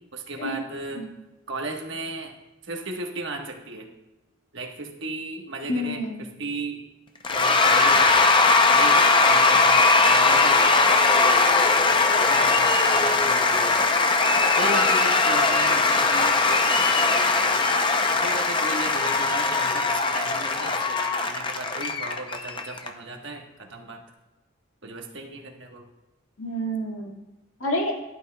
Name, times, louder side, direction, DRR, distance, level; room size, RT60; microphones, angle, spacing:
voice 1, 0.1-1.1 1.5-2.3 2.7-3.9 4.5-6.8 7.3-8.2 8.7-9.8 10.1-14.0 14.5-17.7 18.1-24.0 24.8-25.8, right 3 dB, 60° right, 2 dB, 1.2 m, -35 dB
voice 2, 5.7-6.2 26.4-27.2 27.6-28.0, equal, 85° left, 0 dB, 1.9 m, -28 dB
Cheering / Applause / Crowd, 7.2-22.9, left 3 dB, 25° left, 0.5 m, -20 dB
12.0 x 12.0 x 2.2 m, 1.0 s
head